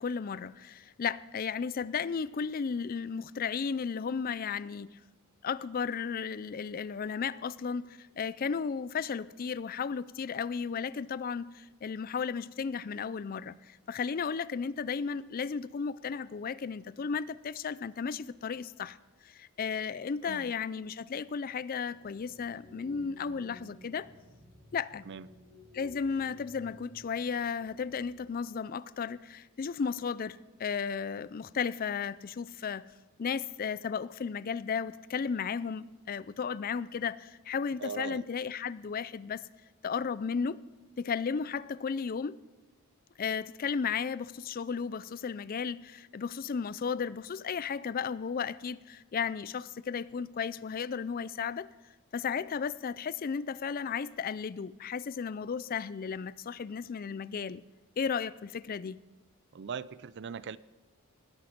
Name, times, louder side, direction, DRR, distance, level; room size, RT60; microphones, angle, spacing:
voice 1, 0.0-5.0 5.4-19.0 19.2-24.1 24.7-25.0 25.7-32.8 33.2-39.4 39.8-40.6 41.0-42.4 43.2-51.7 52.1-57.6 58.0-59.0, left 6 dB, 40° left, 0.4 m, -34 dB
sound 1, 21.9-28.3, left 2 dB, ahead, 4.1 m, -55 dB
voice 2, 37.8-38.2 59.5-60.6, right 6 dB, 50° right, 0.4 m, -40 dB
19.5 x 11.0 x 5.2 m
head